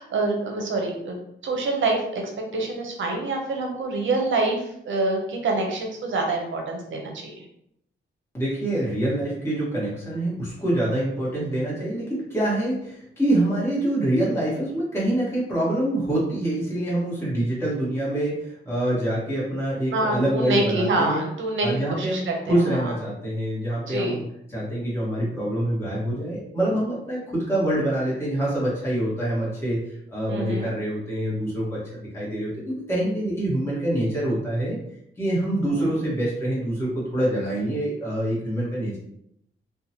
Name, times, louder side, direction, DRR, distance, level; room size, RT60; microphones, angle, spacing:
voice 1, 0.0-2.2 2.5-7.4 19.9-21.7 22.0-22.9 23.9-24.2 30.3-30.7 35.8-35.9, right 2 dB, 65° right, 1 dB, 0.6 m, -26 dB
voice 2, 8.3-21.2 21.6-24.2 24.5-29.8 30.1-34.8 35.2-39.0, right 1 dB, 10° left, -7 dB, 1.1 m, -25 dB
2.7 x 2.2 x 2.7 m, 0.74 s
cardioid pair, 105°, 21 cm